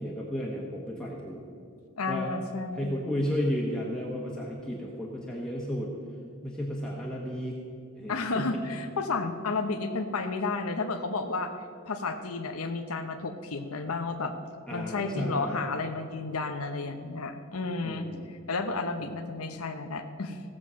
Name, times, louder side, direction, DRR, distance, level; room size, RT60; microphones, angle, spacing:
voice 1, 0.0-1.4 2.1-2.3 2.7-5.9 6.4-7.6 7.9-8.6 14.7-15.6 17.8-18.3 19.0-19.1, equal, 5° left, -4 dB, 1.2 m, -33 dB
voice 2, 2.0-3.1 8.1-11.5 11.9-14.3 14.7-20.4, left 3 dB, 85° left, 6 dB, 0.9 m, -32 dB
16.5 x 7.4 x 6.3 m, 2.4 s
head